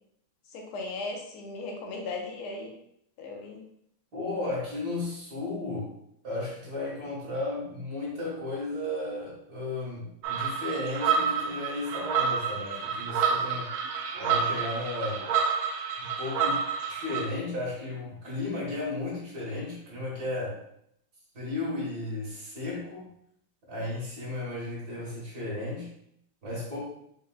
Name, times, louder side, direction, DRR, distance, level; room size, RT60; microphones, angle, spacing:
voice 1, 0.5-2.7 3.2-3.6, left 3 dB, 80° left, 0 dB, 1.6 m, -37 dB
voice 2, 4.1-5.9 6.2-13.7 14.1-15.3 16.0-16.6 16.9-20.6 21.3-23.1 23.7-25.9 26.4-26.8, left 2 dB, 50° right, -5 dB, 1.9 m, -34 dB
sound 1, 10.2-17.3, right 6 dB, 75° right, 1.3 m, -29 dB
5.0 x 3.7 x 2.3 m, 0.72 s
omnidirectional pair, 2.4 m